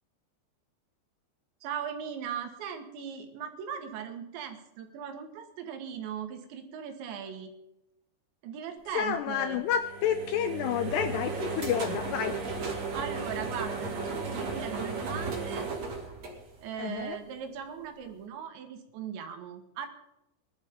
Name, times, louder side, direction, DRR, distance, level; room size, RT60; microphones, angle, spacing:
voice 1, 1.6-7.5 8.4-9.6 12.9-15.7 16.6-19.9, right 8 dB, 75° right, 6 dB, 3.6 m, -38 dB
voice 2, 8.9-12.4 16.8-17.2, left 9 dB, 85° left, 8 dB, 2.4 m, -30 dB
sound 1, 9.7-17.0, right 4 dB, 45° right, 2.9 m, -35 dB
21.5 x 11.5 x 3.6 m, 0.86 s
omnidirectional pair, 5.4 m